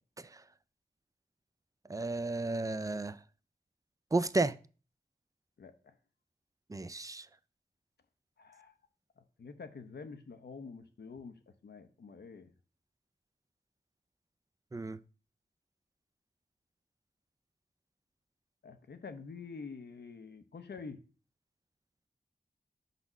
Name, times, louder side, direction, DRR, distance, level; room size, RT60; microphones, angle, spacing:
voice 1, 1.9-3.2 4.1-4.5 6.7-7.3 14.7-15.0, right 2 dB, 20° right, 0.4 m, -33 dB
voice 2, 5.6-5.9 8.4-8.7 9.4-12.5 18.6-21.0, left 5 dB, 90° left, 0.7 m, -47 dB
5.3 x 4.1 x 5.9 m
wide cardioid pair, 60°, 17 cm